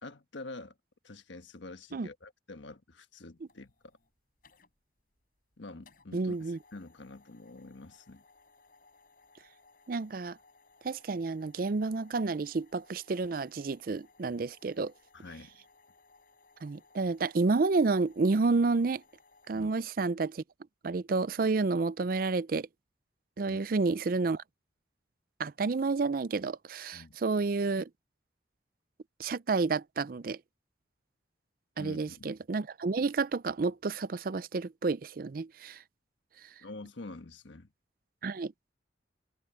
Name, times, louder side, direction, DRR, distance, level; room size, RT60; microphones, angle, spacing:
voice 1, 0.0-0.7 1.0-3.7 5.6-8.2 15.1-15.5 19.5-19.7 23.5-23.6 26.9-27.2 31.8-32.3 36.6-37.7, left 2 dB, 80° left, 1.3 m, -47 dB
sound 1, 3.4-19.6, left 4 dB, 50° left, 6.3 m, -63 dB
voice 2, 6.1-6.6 9.9-10.4 10.8-14.9 16.6-19.0 19.5-20.4 20.8-22.7 23.4-24.4 25.4-27.9 29.2-30.4 31.8-35.8 38.2-38.5, right 3 dB, 50° right, 0.4 m, -30 dB
head